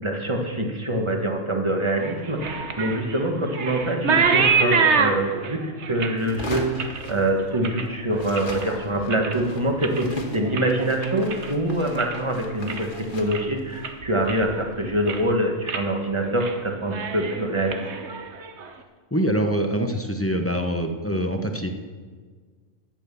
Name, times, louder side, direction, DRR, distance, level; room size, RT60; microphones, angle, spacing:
voice 1, 0.0-17.8, right 1 dB, 20° right, 3 dB, 1.4 m, -25 dB
sound 1, 2.0-8.7 9.0-9.5 9.8-12.2 12.5-13.0 13.3-13.4 13.8-14.6 14.9-15.3 15.7-15.9 16.2-16.6 16.8-18.7, right 5 dB, 60° right, 1.2 m, -26 dB
sound 2, 6.2-7.8 8.1-15.3, left 1 dB, 40° left, 1.6 m, -38 dB
voice 2, 19.1-21.7, equal, 10° left, 5 dB, 0.8 m, -24 dB
11.5 x 9.2 x 6.9 m, 1.5 s
omnidirectional pair, 1.4 m